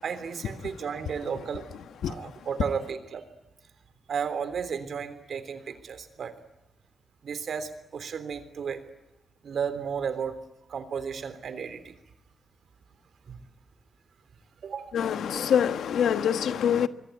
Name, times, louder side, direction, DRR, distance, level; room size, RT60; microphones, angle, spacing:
voice 1, 0.0-1.7 2.0-3.2 4.1-6.3 7.2-8.8 9.4-10.4 10.7-11.9 13.3-13.4 14.6-14.9, right 6 dB, 55° right, 3.5 m, -33 dB
voice 2, 14.9-16.9, left 8 dB, 90° left, 1.4 m, -24 dB
26.0 x 23.0 x 9.4 m
wide cardioid pair, 165°, 0 cm